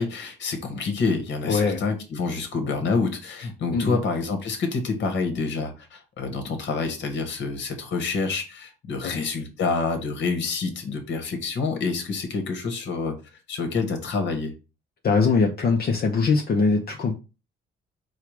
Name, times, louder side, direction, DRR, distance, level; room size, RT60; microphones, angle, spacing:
voice 1, 0.0-13.1 13.5-14.5, left 4 dB, 65° left, 1.4 m, -27 dB
voice 2, 1.5-1.8 3.7-4.0 9.0-9.2 15.0-17.1, left 4 dB, 50° left, 0.8 m, -22 dB
4.4 x 2.4 x 4.7 m
cardioid pair, 90°, 20 cm